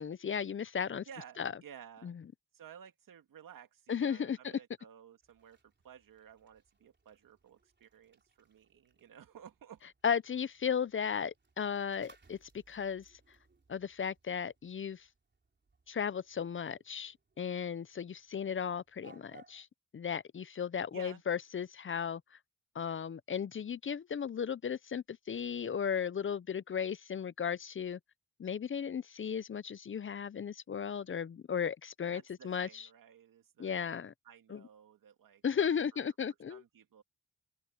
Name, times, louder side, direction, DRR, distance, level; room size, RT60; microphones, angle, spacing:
voice 1, 0.0-1.0 1.4-1.5 2.0-2.1 3.9-4.5 10.0-12.4 12.7-13.1 13.7-15.1 15.9-19.7 19.9-22.2 22.7-28.0 28.4-32.9 33.6-34.1 34.5-34.6 35.4-36.6, left 7 dB, 40° left, 0.5 m, -35 dB
voice 2, 1.1-2.2 2.5-5.6 5.8-9.8 20.9-21.2 32.1-34.0 34.2-35.4 35.9-36.1 36.5-37.0, right 8 dB, 85° right, 2.4 m, -54 dB
sound 1, 5.2-19.6, right 3 dB, 35° right, 4.1 m, -66 dB
cardioid pair, 75°, 32 cm